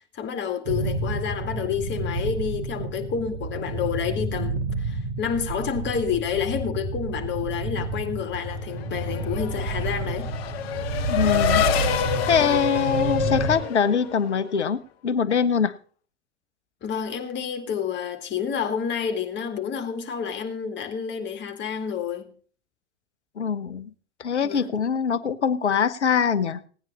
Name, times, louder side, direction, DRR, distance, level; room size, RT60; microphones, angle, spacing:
voice 1, 0.1-10.3 12.4-12.6 16.8-22.3 24.4-24.7, left 7 dB, 35° left, 2.2 m, -29 dB
sound 1, 0.7-13.6, right 3 dB, 65° right, 1.9 m, -30 dB
Race car auto racing / Accelerating revving vroom, 8.5-14.6, left 9 dB, 65° left, 1.1 m, -27 dB
voice 2, 11.1-11.7 12.3-15.7 23.4-23.9 24.2-26.6, left 6 dB, 85° left, 0.8 m, -23 dB
17.0 x 9.6 x 4.1 m
figure-of-eight pair, 85°, 34 cm